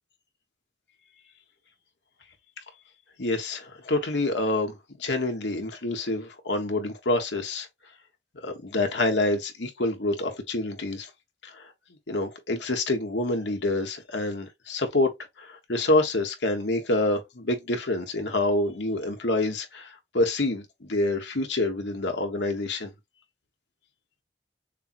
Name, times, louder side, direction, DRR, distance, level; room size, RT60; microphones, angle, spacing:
voice 1, 3.2-7.7 8.3-11.1 11.4-11.7 12.1-15.1 15.4-22.9, left 2 dB, 90° left, 1.4 m, -27 dB
6.6 x 2.2 x 2.9 m
head